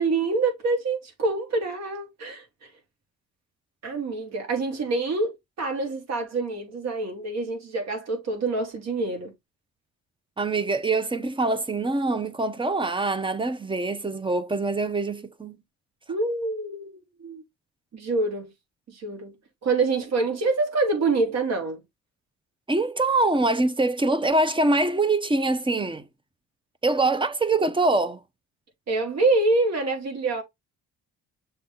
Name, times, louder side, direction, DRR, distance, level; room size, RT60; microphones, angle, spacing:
voice 1, 0.0-2.4 3.8-9.3 16.1-17.4 17.9-18.5 18.9-19.3 19.6-21.8 28.9-30.4, right 3 dB, 60° right, 3.3 m, -26 dB
voice 2, 10.4-15.6 22.7-26.0 26.8-28.2, right 2 dB, 15° right, 0.9 m, -24 dB
6.8 x 3.8 x 3.9 m
cardioid pair, 90°, 30 cm